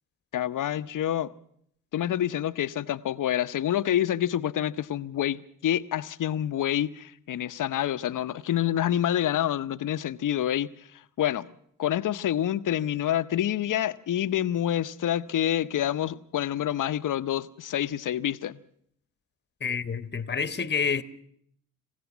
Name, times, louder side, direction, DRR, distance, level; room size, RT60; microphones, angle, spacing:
voice 1, 0.3-1.3 1.9-11.5 11.8-18.6, left 11 dB, 50° left, 0.9 m, -27 dB
voice 2, 19.6-21.0, left 6 dB, 25° left, 1.2 m, -28 dB
27.0 x 15.5 x 6.2 m
hypercardioid pair, 40°, 42 cm